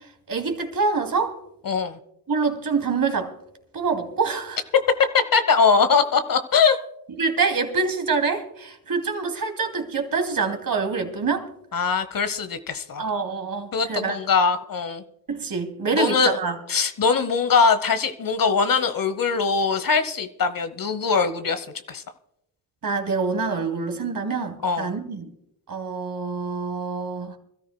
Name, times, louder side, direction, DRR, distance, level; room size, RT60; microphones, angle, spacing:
voice 1, 0.3-1.4 2.3-3.3 3.7-4.6 7.2-11.5 13.0-14.2 15.3-16.5 22.8-25.2 25.7-27.4, right 4 dB, 45° right, 2.8 m, -26 dB
voice 2, 1.6-2.0 5.3-6.8 11.7-13.0 13.7-15.0 15.9-16.4 16.7-22.0 24.6-24.9, left 5 dB, 45° left, 1.1 m, -21 dB
25.5 x 13.5 x 2.3 m
hypercardioid pair, 50°, 49 cm